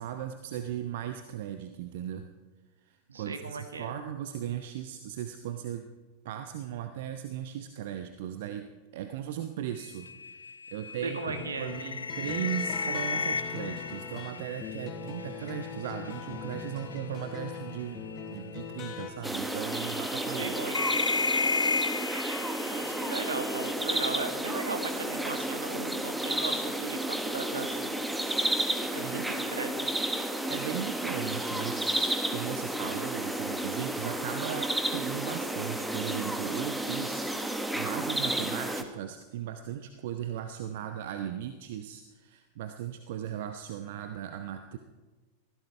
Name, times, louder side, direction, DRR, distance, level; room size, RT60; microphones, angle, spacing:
voice 1, 0.0-2.3 2.9-5.9 6.2-8.7 8.9-20.6 29.0-29.4 30.2-44.8, right 10 dB, 55° right, 8 dB, 0.9 m, -37 dB
voice 2, 3.1-4.0 11.0-11.7 20.4-21.1 22.7-27.9 28.9-29.7, right 4 dB, 70° right, 7 dB, 1.8 m, -37 dB
sound 1, 9.8-16.2 16.5-17.0 18.1-18.2 18.7-18.8 19.7-23.7, left 4 dB, 75° left, 0.4 m, -33 dB
sound 2, 11.2-19.1, left 6 dB, 30° left, 1.9 m, -41 dB
sound 3, 19.2-38.8, right 1 dB, 5° right, 1.3 m, -32 dB
23.0 x 16.0 x 3.3 m, 1.3 s
figure-of-eight pair, 90°, 0 cm